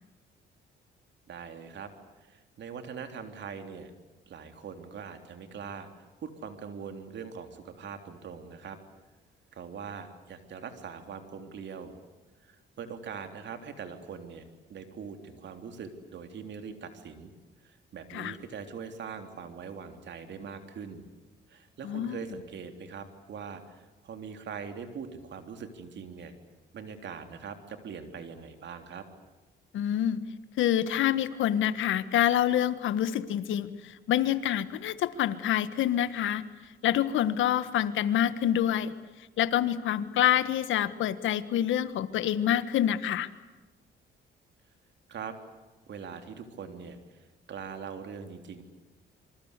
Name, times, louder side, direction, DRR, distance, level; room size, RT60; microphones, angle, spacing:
voice 1, 1.3-1.9 2.2-3.9 4.3-8.8 9.5-11.9 12.4-14.4 14.7-17.3 17.6-21.1 21.5-26.3 26.7-29.1 45.1-45.4 45.9-48.6, right 6 dB, 65° right, 7 dB, 3.5 m, -42 dB
voice 2, 21.8-22.2 29.7-30.2 30.6-36.4 36.8-38.9 39.4-43.3, left 11 dB, 80° left, 13 dB, 1.6 m, -27 dB
27.0 x 24.5 x 8.3 m, 1.1 s
cardioid pair, 90°, 20 cm